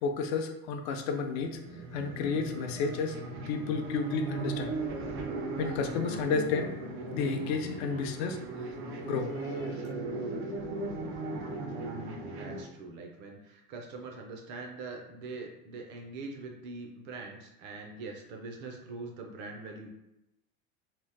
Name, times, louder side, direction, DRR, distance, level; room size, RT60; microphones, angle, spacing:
voice 1, 0.0-1.6 1.9-3.2 3.5-4.7 5.6-6.7 7.1-8.4 9.0-9.8, left 5 dB, 75° left, 5 dB, 0.5 m, -31 dB
sound 1, 1.3-12.6, right 2 dB, 90° right, 0.7 m, -37 dB
voice 2, 12.3-19.9, right 3 dB, 35° right, 2 dB, 0.4 m, -43 dB
2.9 x 2.0 x 3.2 m, 0.89 s
cardioid pair, 165°, 32 cm